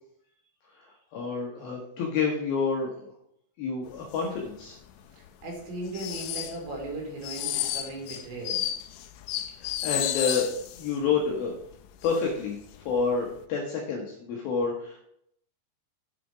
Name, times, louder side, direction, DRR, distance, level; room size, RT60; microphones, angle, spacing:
voice 1, 0.8-3.0 3.6-4.8 9.6-10.5 10.7-11.5 12.0-12.6 12.9-15.0, left 5 dB, 70° left, -1 dB, 2.4 m, -29 dB
sound 1, 4.1-4.4 4.6-4.8 5.3-11.0 11.3-11.4 11.7-12.3 12.6-12.9 13.4-13.5, left 12 dB, 85° left, 2.4 m, -32 dB
voice 2, 5.4-8.6, right 2 dB, 70° right, -1 dB, 4.5 m, -37 dB
8.1 x 5.9 x 4.9 m, 0.72 s
omnidirectional pair, 5.5 m